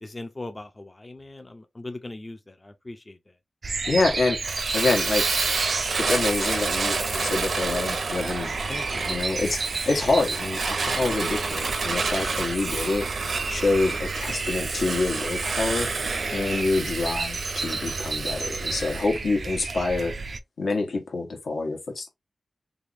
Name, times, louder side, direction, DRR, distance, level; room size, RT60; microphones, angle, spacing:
voice 1, 0.0-3.3 8.7-9.0 11.9-12.4 16.3-16.6, left 2 dB, 25° left, 0.4 m, -40 dB
sound 1, 3.6-20.4, right 3 dB, 55° right, 0.4 m, -32 dB
voice 2, 3.9-4.4 4.7-5.3 6.0-8.5 9.1-13.1 13.5-15.9 16.3-20.1 20.6-22.1, left 3 dB, 85° left, 1.1 m, -26 dB
Fire, 4.4-19.1, right 4 dB, 85° right, 0.9 m, -29 dB
3.3 x 3.1 x 2.5 m
wide cardioid pair, 130°, 0 cm